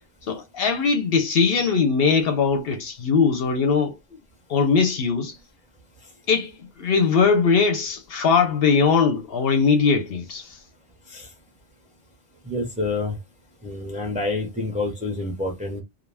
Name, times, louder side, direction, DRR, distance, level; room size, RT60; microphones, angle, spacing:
voice 1, 0.3-3.9 4.5-5.4 6.3-6.5 6.8-10.6, left 5 dB, 65° left, 0.7 m, -20 dB
voice 2, 12.4-13.2 13.6-15.8, left 2 dB, 10° right, 0.5 m, -28 dB
2.4 x 2.1 x 3.2 m
omnidirectional pair, 1.2 m